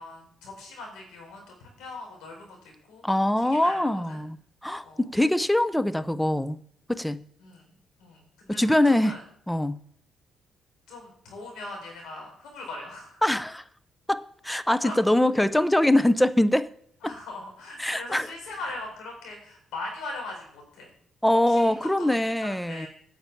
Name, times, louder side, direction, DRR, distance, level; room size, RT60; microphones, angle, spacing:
voice 1, 0.0-3.0 3.4-4.2 4.8-5.0 7.4-9.2 10.9-13.2 14.8-15.0 17.0-20.9 21.5-22.9, left 2 dB, 90° left, 4.6 m, -40 dB
voice 2, 3.0-4.4 4.6-6.6 6.9-7.2 8.5-9.2 9.5-9.8 13.2-13.6 14.1-16.7 17.0-17.1 17.8-18.3 21.2-22.9, left 1 dB, 5° left, 0.6 m, -23 dB
9.0 x 6.6 x 8.4 m
cardioid pair, 90°, 0 cm